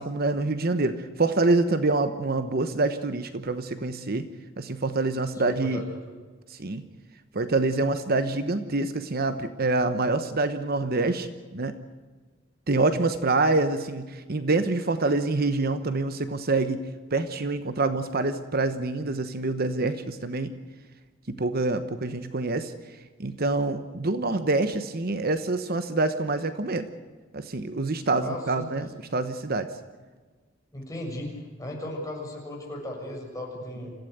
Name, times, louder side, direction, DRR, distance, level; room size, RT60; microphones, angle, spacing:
voice 1, 0.0-4.3 4.6-5.8 6.5-6.8 7.3-11.7 12.7-16.8 17.1-20.5 21.3-26.9 27.3-29.7, right 2 dB, 50° right, 10 dB, 1.1 m, -26 dB
voice 2, 5.3-6.1 28.2-28.7 30.7-33.9, left 1 dB, 15° left, -1 dB, 6.9 m, -36 dB
26.5 x 16.0 x 8.1 m, 1.4 s
head